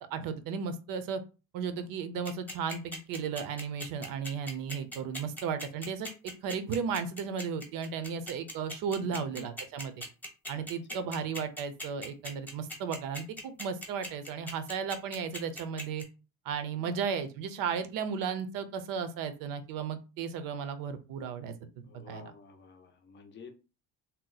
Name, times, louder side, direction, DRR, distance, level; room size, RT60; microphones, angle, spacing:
voice 1, 0.1-1.2 1.5-6.1 6.4-10.0 10.5-16.0 16.4-22.3, right 6 dB, 70° right, 11 dB, 0.6 m, -35 dB
sound 1, 2.3-16.0, equal, 5° left, 0.9 m, -39 dB
voice 2, 9.0-9.5 10.5-11.1 16.8-17.0 21.8-23.6, left 4 dB, 35° left, 5 dB, 0.5 m, -51 dB
2.8 x 2.0 x 3.8 m, 0.31 s
cardioid pair, 140°, 35 cm